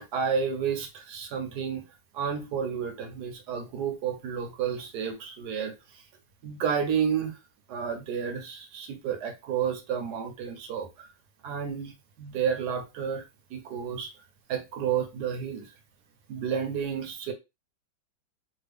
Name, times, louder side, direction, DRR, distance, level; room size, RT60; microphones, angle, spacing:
voice 1, 0.0-1.8 2.1-6.0 6.4-7.4 7.7-11.1 11.4-14.1 14.5-15.7 16.3-17.3, right 7 dB, 65° right, 1.1 m, -31 dB
3.4 x 2.1 x 3.4 m
omnidirectional pair, 2.2 m